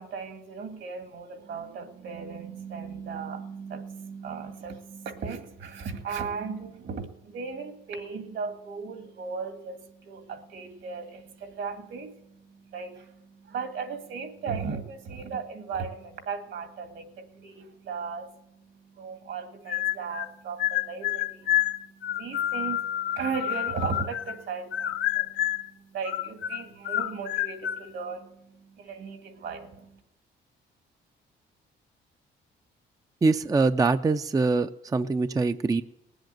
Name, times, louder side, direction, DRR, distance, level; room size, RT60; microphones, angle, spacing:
voice 1, 0.0-30.0, right 5 dB, 70° right, 6 dB, 2.1 m, -37 dB
sound 1, 19.7-20.3 20.6-24.4 24.7-25.7 26.0-27.9, left 12 dB, 75° left, 0.7 m, -29 dB
voice 2, 33.2-35.8, right 3 dB, 15° right, 10 dB, 0.5 m, -24 dB
19.5 x 7.9 x 9.1 m, 0.89 s
cardioid pair, 90°, 20 cm